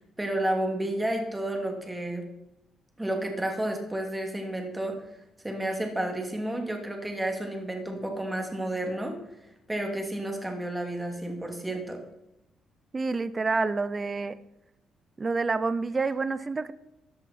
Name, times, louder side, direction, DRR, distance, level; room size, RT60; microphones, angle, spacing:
voice 1, 0.0-2.2 3.0-5.0 5.4-9.1 9.7-12.0, right 1 dB, 10° right, 3 dB, 2.7 m, -31 dB
voice 2, 12.9-14.4 15.2-16.7, right 4 dB, 25° right, 15 dB, 0.7 m, -28 dB
13.5 x 10.5 x 4.4 m, 0.87 s
cardioid pair, 115°, 0 cm